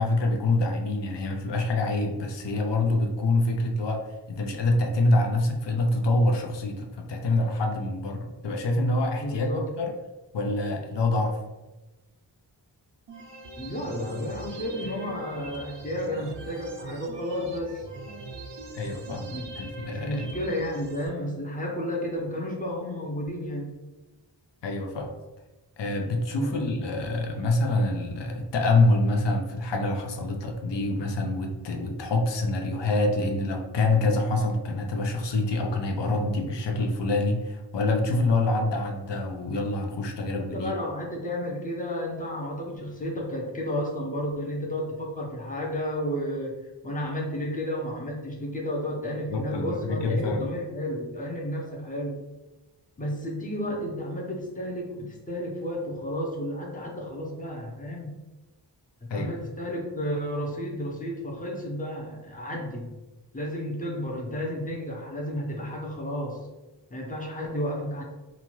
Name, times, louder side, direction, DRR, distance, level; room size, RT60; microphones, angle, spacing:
voice 1, 0.0-4.0 4.3-9.9 10.3-11.4 18.7-20.3 24.6-25.1 25.8-40.7 49.3-50.5 59.1-59.3, left 2 dB, 75° left, 2 dB, 0.6 m, -26 dB
voice 2, 9.2-9.7 13.6-17.9 19.3-19.5 19.8-23.7 26.4-26.8 40.2-52.2 53.0-58.1 59.1-62.9 63.3-66.4 66.9-68.0, equal, 20° left, -1 dB, 0.7 m, -32 dB
sound 1, 13.1-21.1, right 2 dB, 80° right, 0.5 m, -41 dB
2.8 x 2.4 x 3.0 m, 1.1 s
wide cardioid pair, 55°, 43 cm